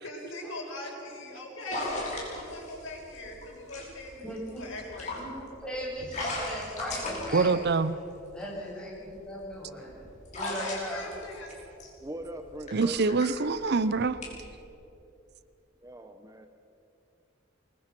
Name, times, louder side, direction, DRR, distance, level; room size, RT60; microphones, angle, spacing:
voice 1, 0.0-4.2 4.6-5.2 10.6-11.5, left 1 dB, 85° left, -1 dB, 6.4 m, -41 dB
sound 1, 1.7-8.4 9.0-14.6, left 2 dB, 40° left, 5.6 m, -38 dB
voice 2, 4.2-4.6 5.1-7.6 8.3-9.9 10.3-11.2, equal, 5° left, -5 dB, 7.6 m, -38 dB
voice 3, 7.3-8.0 12.7-14.2, right 4 dB, 55° right, 14 dB, 0.7 m, -25 dB
voice 4, 12.0-13.0 15.8-16.5, right 1 dB, 15° right, 6 dB, 0.9 m, -40 dB
24.5 x 21.5 x 6.1 m, 2.8 s
head